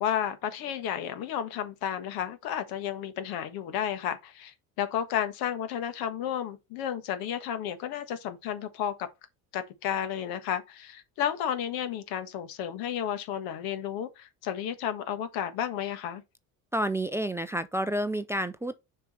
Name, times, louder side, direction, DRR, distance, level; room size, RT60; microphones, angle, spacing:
voice 1, 0.0-9.1 9.5-16.2, left 9 dB, 80° left, 1.4 m, -32 dB
voice 2, 16.7-18.8, right 1 dB, 10° right, 0.4 m, -29 dB
6.9 x 4.6 x 4.2 m
cardioid pair, 125°, 36 cm